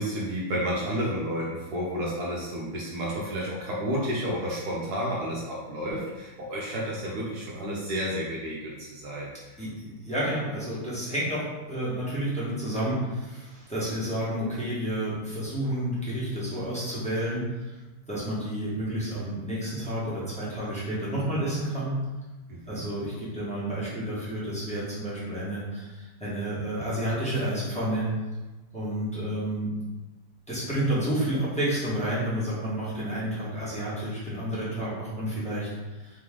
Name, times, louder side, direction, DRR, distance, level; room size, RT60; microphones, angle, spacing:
voice 1, 0.0-9.6 22.5-22.9, equal, 70° right, -4 dB, 0.9 m, -31 dB
voice 2, 9.6-17.8 18.1-21.9 22.7-28.1 28.7-29.7 30.5-36.2, right 1 dB, 5° left, -10 dB, 0.9 m, -30 dB
3.9 x 3.1 x 3.7 m, 1.1 s
omnidirectional pair, 2.4 m